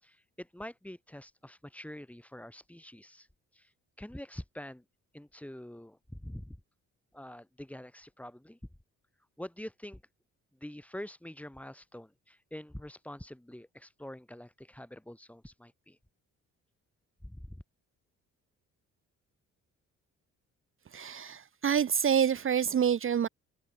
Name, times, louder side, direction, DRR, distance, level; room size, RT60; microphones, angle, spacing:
voice 1, 0.0-3.3 3.5-3.7 4.0-4.8 5.1-6.6 7.1-8.6 9.4-10.0 10.5-16.0 17.2-17.6, left 1 dB, 5° left, 6.3 m, -45 dB
voice 2, 20.9-23.3, right 8 dB, 45° right, 1.1 m, -27 dB
open air
cardioid pair, 90°, 30 cm